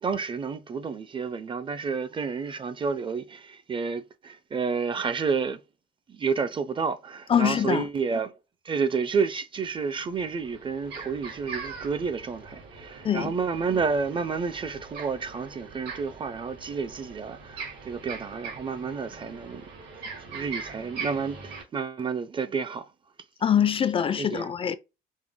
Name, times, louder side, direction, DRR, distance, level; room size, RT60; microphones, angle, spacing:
voice 1, 0.0-5.6 6.1-8.3 8.6-19.7 20.3-22.9 24.2-24.5, right 5 dB, 30° right, 0.6 m, -30 dB
voice 2, 7.3-7.9 13.0-13.3 23.4-24.7, left 8 dB, 35° left, 0.4 m, -24 dB
sound 1, 9.5-9.6 10.0-21.6, right 5 dB, 75° right, 1.8 m, -41 dB
5.3 x 2.2 x 3.6 m
cardioid pair, 110°, 17 cm